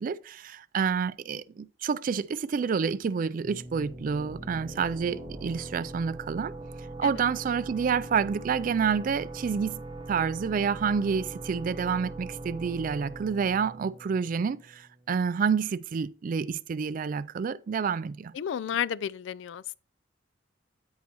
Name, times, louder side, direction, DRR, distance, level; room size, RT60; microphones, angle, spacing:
voice 1, 0.0-6.5 7.0-9.8 10.1-18.3, right 6 dB, 45° right, 0.3 m, -28 dB
sound 1, 3.4-14.9, right 2 dB, 25° right, 0.8 m, -41 dB
voice 2, 18.3-19.8, left 9 dB, 70° left, 0.3 m, -32 dB
12.5 x 4.8 x 2.9 m
head